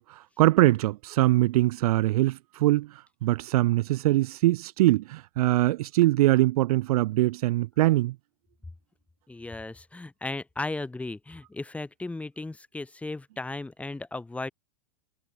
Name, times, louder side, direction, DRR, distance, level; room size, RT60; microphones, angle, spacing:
voice 1, 0.0-8.2, right 17 dB, 65° right, 0.5 m, -23 dB
voice 2, 9.3-14.5, left 2 dB, 5° left, 2.8 m, -36 dB
hypercardioid pair, 135°, 21 cm